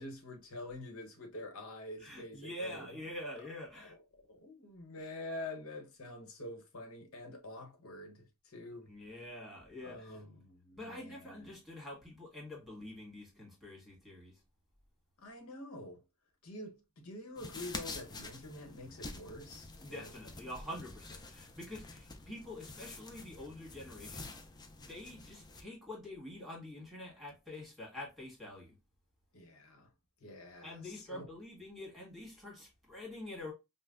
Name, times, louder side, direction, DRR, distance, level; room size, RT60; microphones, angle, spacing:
voice 1, 0.0-3.1 3.8-4.0 4.3-8.9 9.8-11.6 15.2-16.0 16.4-20.1 29.3-29.9 30.2-31.3, left 1 dB, 80° left, 1.0 m, -47 dB
voice 2, 2.0-3.9 8.9-10.1 10.8-14.4 19.8-24.3 24.8-28.7 30.6-33.5, left 1 dB, ahead, 1.6 m, -46 dB
sound 1, 17.4-25.6, left 3 dB, 20° left, 0.4 m, -48 dB
5.4 x 2.1 x 2.5 m
head